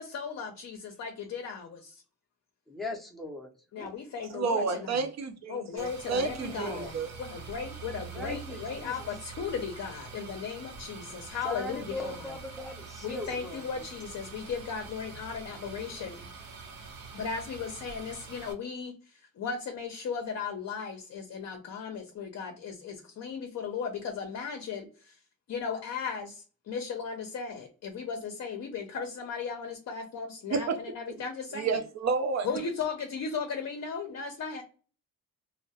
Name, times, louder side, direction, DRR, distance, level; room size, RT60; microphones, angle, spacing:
voice 1, 0.0-2.0 3.7-5.0 5.5-12.2 13.0-16.3 17.1-25.2 25.5-31.8 32.4-34.6, left 6 dB, 50° left, 0.6 m, -36 dB
voice 2, 2.7-3.5 3.8-3.9 4.3-4.8 6.1-6.9 8.1-9.1 11.4-13.9 15.5-16.1, left 2 dB, ahead, 0.5 m, -40 dB
voice 3, 4.3-7.1 30.5-30.8 31.5-32.5, right 4 dB, 50° right, 0.5 m, -30 dB
Gas Fire, 5.8-18.5, right 5 dB, 75° right, 0.8 m, -45 dB
2.2 x 2.1 x 2.6 m
cardioid pair, 100°, 35 cm